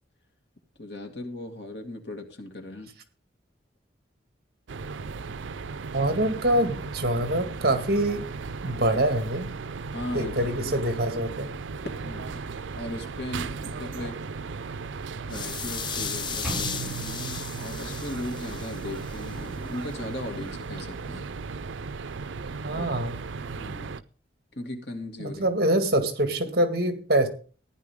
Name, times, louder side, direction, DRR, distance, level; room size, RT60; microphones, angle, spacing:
voice 1, 0.8-2.9 9.9-10.8 12.0-12.4 12.8-14.2 15.3-21.3 22.8-22.9 23.6-24.0 24.5-25.5, left 1 dB, 60° left, 4 dB, 2.4 m, -37 dB
sound 1, 4.7-24.0, right 4 dB, 85° right, 0.5 m, -36 dB
voice 2, 5.9-8.3 8.6-9.5 10.1-11.5 22.6-23.2 25.2-27.3, right 1 dB, 55° right, 7 dB, 2.0 m, -25 dB
sound 2, 15.3-19.4, left 7 dB, 25° left, 0.6 m, -35 dB
sound 3, 16.4-18.4, right 3 dB, 5° right, 7.7 m, -37 dB
15.0 x 10.5 x 3.7 m, 0.39 s
head